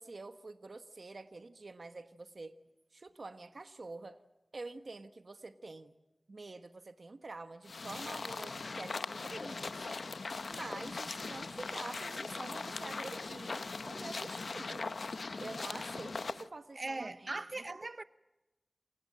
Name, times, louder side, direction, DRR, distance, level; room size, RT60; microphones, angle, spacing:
voice 1, 0.0-2.5 2.9-4.2 4.5-5.9 6.3-10.0 10.5-14.9 15.4-17.4, right 3 dB, 75° right, 1.2 m, -47 dB
sound 1, 7.7-16.5, left 3 dB, 90° left, 0.7 m, -40 dB
voice 2, 16.7-18.0, right 2 dB, 55° right, 0.7 m, -39 dB
28.0 x 16.0 x 8.9 m
wide cardioid pair, 50°, 0 cm